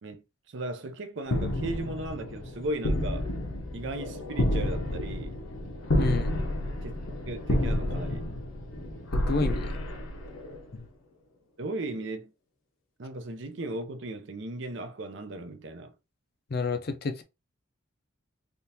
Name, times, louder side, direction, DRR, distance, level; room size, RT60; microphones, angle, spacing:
voice 1, 0.0-3.3 3.7-5.4 6.8-6.9 7.3-8.2 11.6-12.3 13.0-15.9, right 2 dB, 60° right, 0.6 m, -36 dB
sound 1, 1.3-10.8, left 1 dB, 80° left, 0.8 m, -30 dB
voice 2, 6.0-6.3 9.1-9.8 10.7-10.9 16.5-17.2, left 3 dB, 45° left, 0.5 m, -30 dB
3.5 x 2.5 x 2.8 m
head